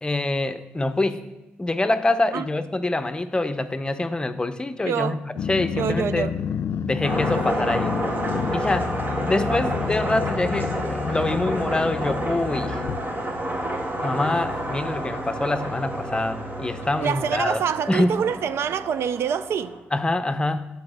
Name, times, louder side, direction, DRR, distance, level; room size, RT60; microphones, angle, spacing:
voice 1, 0.0-1.2 1.6-6.3 6.8-8.0 8.5-8.9 9.3-12.8 14.0-17.6 17.9-18.1 19.9-20.6, left 2 dB, 20° left, 0.7 m, -25 dB
voice 2, 4.9-5.2 5.7-6.4 17.0-19.8, right 8 dB, 75° right, 0.4 m, -26 dB
Growling, 5.4-13.0, left 7 dB, 70° left, 0.4 m, -30 dB
sound 1, 7.0-19.8, right 1 dB, 45° right, 2.0 m, -29 dB
8.5 x 4.9 x 6.5 m
cardioid pair, 65°, 4 cm